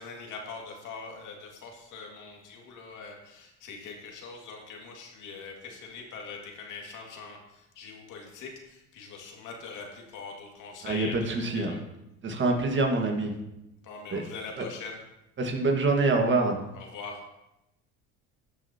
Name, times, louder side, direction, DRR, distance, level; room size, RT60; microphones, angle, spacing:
voice 1, 0.0-11.2 11.5-11.8 13.8-15.0 16.7-17.2, left 4 dB, 60° left, 1 dB, 2.1 m, -42 dB
voice 2, 10.8-11.8 12.2-13.3 14.1-14.2 14.6-14.7 15.4-16.6, right 3 dB, 35° right, 3 dB, 1.5 m, -25 dB
13.0 x 6.2 x 2.8 m, 0.90 s
supercardioid pair, 95°, 35 cm